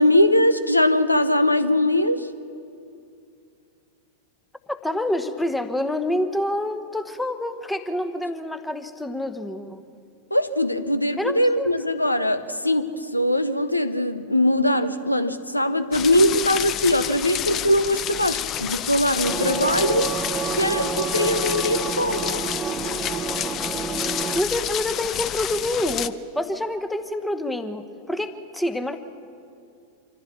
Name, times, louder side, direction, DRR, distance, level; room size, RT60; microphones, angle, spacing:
voice 1, 0.0-2.3 10.3-20.1 20.6-22.4, left 1 dB, 85° left, 12 dB, 0.8 m, -21 dB
voice 2, 4.7-9.8 11.2-11.7 24.3-29.0, left 1 dB, 5° left, 9 dB, 1.1 m, -27 dB
sound 1, 15.9-26.1, left 10 dB, 30° left, 0.6 m, -29 dB
sound 2, 19.2-24.4, right 6 dB, 20° right, 0.7 m, -29 dB
25.5 x 14.5 x 7.3 m, 2.5 s
figure-of-eight pair, 90°, 0 cm